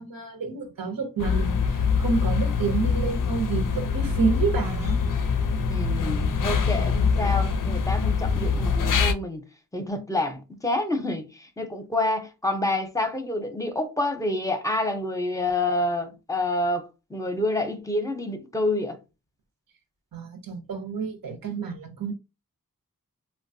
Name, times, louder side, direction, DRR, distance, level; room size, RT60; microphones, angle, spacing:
voice 1, 0.0-5.0 6.7-7.1 20.1-22.1, right 5 dB, 80° right, 0.7 m, -29 dB
sound 1, 1.2-9.1, left 5 dB, 70° left, 0.5 m, -24 dB
voice 2, 5.7-9.4 9.7-19.0, left 2 dB, 10° left, 0.6 m, -28 dB
3.1 x 2.2 x 2.6 m
cardioid pair, 40°, 34 cm